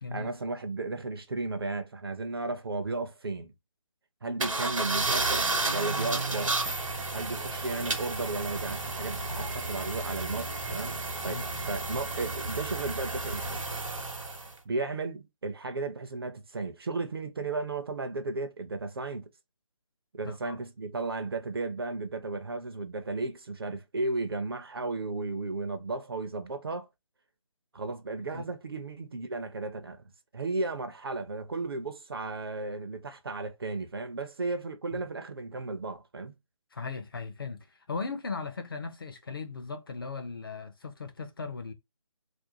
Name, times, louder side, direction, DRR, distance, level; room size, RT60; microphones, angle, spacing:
voice 1, 0.1-3.5 4.2-6.6 7.1-11.0 11.2-13.6 14.7-19.3 20.1-26.9 27.7-30.0 30.3-36.3, right 3 dB, 45° right, 0.5 m, -34 dB
sound 1, 4.4-14.5, right 3 dB, 70° right, 1.0 m, -32 dB
voice 2, 20.2-20.6 28.3-28.4 34.9-35.0 36.7-41.7, left 4 dB, 40° left, 0.4 m, -38 dB
2.5 x 2.2 x 2.7 m
figure-of-eight pair, 150°, 17 cm